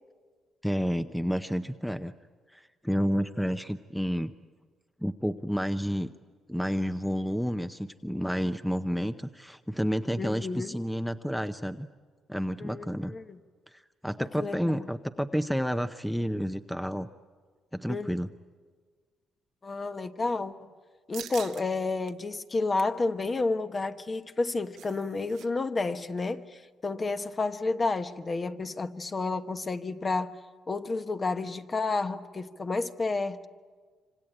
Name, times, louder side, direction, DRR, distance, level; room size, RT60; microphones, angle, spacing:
voice 1, 0.6-2.1 2.5-4.3 5.0-6.1 6.5-11.9 12.3-13.1 13.7-17.1 17.7-18.3, equal, ahead, 0.7 m, -30 dB
voice 2, 10.2-10.7 12.6-13.4 14.4-14.9 17.9-18.1 19.6-20.7 21.1-30.4 30.7-33.5, left 3 dB, 30° left, 1.1 m, -31 dB
sound 1, 21.1-21.6 22.1-22.2 22.6-23.0 24.3-25.5 25.7-25.8 26.2-26.5, right 11 dB, 80° right, 1.0 m, -45 dB
26.0 x 26.0 x 8.9 m
cardioid pair, 90°, 0 cm